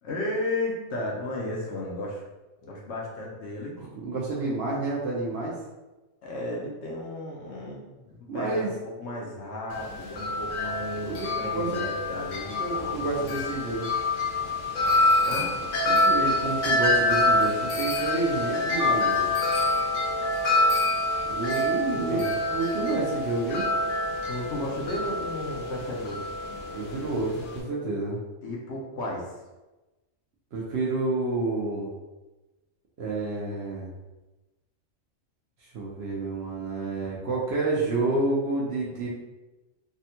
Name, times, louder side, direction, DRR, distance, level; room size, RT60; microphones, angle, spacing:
voice 1, 0.0-2.2 2.6-3.8 6.2-13.3 15.3-15.6 21.9-22.3 24.3-26.2 28.4-29.3, left 1 dB, 65° left, -2 dB, 0.8 m, -34 dB
voice 2, 3.8-5.6 8.3-8.7 11.0-11.8 12.6-13.9 15.9-19.3 21.3-22.2 22.5-23.7 26.7-28.2 30.5-31.9 33.0-33.9 35.7-39.1, right 3 dB, 60° right, -4 dB, 0.7 m, -29 dB
Wind chime, 9.7-27.6, left 2 dB, 85° left, 1.1 m, -26 dB
3.5 x 2.2 x 2.7 m, 1.1 s
omnidirectional pair, 1.4 m